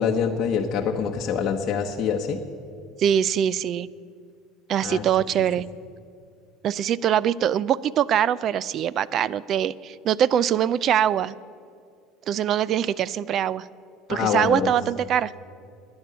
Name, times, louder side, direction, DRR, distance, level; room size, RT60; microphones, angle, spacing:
voice 1, 0.0-2.4 4.8-5.0 14.1-14.7, left 7 dB, 40° left, 1 dB, 0.9 m, -25 dB
voice 2, 3.0-3.9 4.7-5.7 6.6-11.4 12.3-13.7 14.1-15.3, right 9 dB, 40° right, 20 dB, 0.4 m, -23 dB
12.0 x 9.7 x 9.5 m, 2.3 s
supercardioid pair, 130°, 0 cm